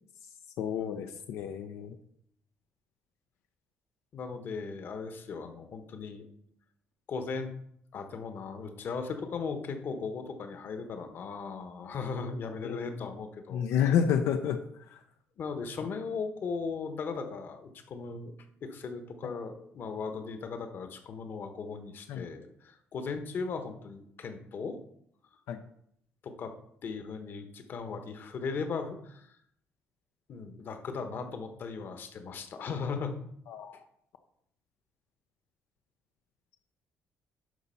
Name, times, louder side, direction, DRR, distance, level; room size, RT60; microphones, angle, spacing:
voice 1, 0.6-1.9 12.6-13.1 13.5-14.6 14.9-15.0 22.1-22.3 25.5-25.6 33.5-33.8, left 8 dB, 90° left, 6 dB, 0.6 m, -30 dB
voice 2, 4.1-6.3 7.1-7.5 7.9-13.6 15.4-18.3 18.6-24.8 26.2-26.5 26.8-29.4 30.3-33.1, left 5 dB, 50° left, 7 dB, 1.1 m, -37 dB
11.5 x 4.1 x 5.7 m, 0.72 s
cardioid pair, 130°, 4 cm